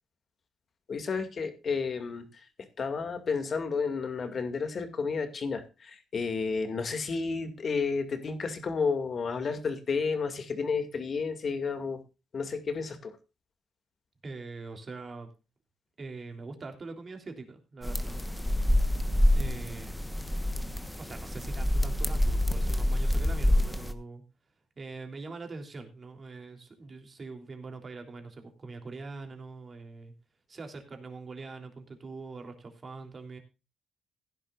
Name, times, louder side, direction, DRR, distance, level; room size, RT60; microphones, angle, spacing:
voice 1, 0.9-2.5 2.8-12.0 12.3-13.1, left 5 dB, 45° left, 8 dB, 2.3 m, -31 dB
voice 2, 14.2-15.3 16.0-18.2 19.3-20.1 21.0-24.2 24.7-30.1 30.5-33.4, right 3 dB, 35° right, 5 dB, 3.2 m, -43 dB
sound 1, 17.8-23.9, left 1 dB, 5° left, 1.2 m, -27 dB
16.0 x 10.5 x 2.5 m, 0.29 s
cardioid pair, 90°, 0 cm